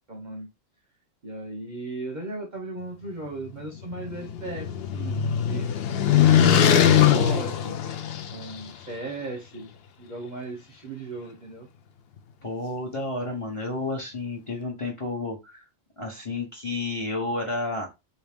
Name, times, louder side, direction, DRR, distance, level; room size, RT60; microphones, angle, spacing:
voice 1, 0.1-0.5 1.2-5.7 6.1-7.8 8.3-9.7 10.0-11.7, right 2 dB, 45° right, 2 dB, 0.6 m, -37 dB
sound 1, 3.8-8.6, left 9 dB, 65° left, 0.6 m, -21 dB
voice 2, 12.4-15.6 16.0-17.9, left 2 dB, 30° left, 1 dB, 0.7 m, -31 dB
2.8 x 2.8 x 3.4 m, 0.23 s
omnidirectional pair, 1.3 m